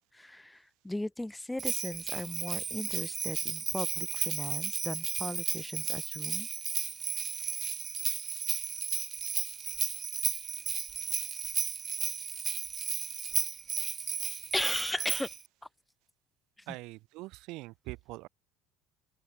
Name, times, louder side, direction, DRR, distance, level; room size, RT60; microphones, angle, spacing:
voice 1, 0.1-6.5 14.5-15.3, left 1 dB, 5° left, 0.9 m, -37 dB
Bell, 1.6-15.4, right 6 dB, 35° right, 1.6 m, -34 dB
voice 2, 16.7-18.3, right 21 dB, 70° right, 2.2 m, -43 dB
open air
supercardioid pair, 95°, 0 cm